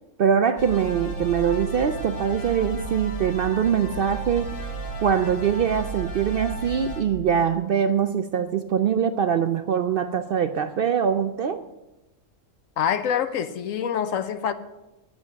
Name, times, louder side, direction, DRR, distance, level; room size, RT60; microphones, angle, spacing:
voice 1, 0.2-4.6 5.0-11.6, right 7 dB, 65° right, 0.6 m, -23 dB
sound 1, 0.6-7.0, right 3 dB, 45° left, 1.5 m, -33 dB
voice 2, 12.8-14.5, left 8 dB, 80° left, 1.1 m, -25 dB
9.7 x 8.2 x 6.7 m
omnidirectional pair, 1.4 m